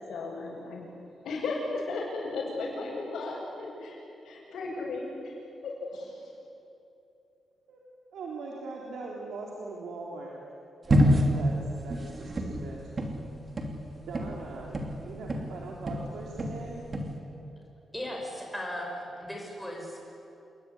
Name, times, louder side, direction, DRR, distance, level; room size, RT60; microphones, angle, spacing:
voice 1, 0.1-0.9 1.2-4.0 4.2-5.3 5.6-6.2, left 3 dB, 85° left, -7 dB, 7.0 m, -35 dB
voice 2, 8.1-10.3 10.9-11.0 11.4-11.5 11.8-12.9 14.1-16.8, right 3 dB, 75° right, -2 dB, 3.5 m, -41 dB
sound 1, 10.9-15.6 15.9-17.2, equal, 25° right, 2.8 m, -27 dB
voice 3, 17.9-20.1, left 1 dB, 5° left, 0 dB, 5.4 m, -37 dB
27.5 x 22.0 x 9.8 m, 2.9 s
wide cardioid pair, 175°, 0 cm